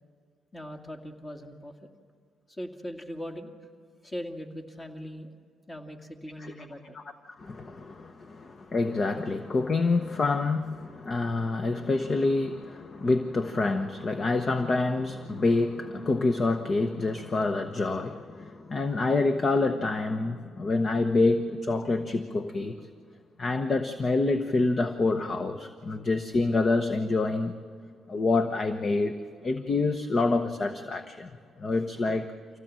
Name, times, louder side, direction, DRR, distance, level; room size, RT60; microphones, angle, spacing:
voice 1, 0.5-1.7 2.5-3.5 4.0-5.3 5.7-7.0, equal, 25° left, 4 dB, 2.3 m, -40 dB
voice 2, 6.9-22.8 23.4-27.6 28.1-29.2 29.4-31.3 31.6-32.3, left 3 dB, 40° left, 8 dB, 1.0 m, -27 dB
25.5 x 16.5 x 7.6 m, 2.2 s
cardioid pair, 90°, 0 cm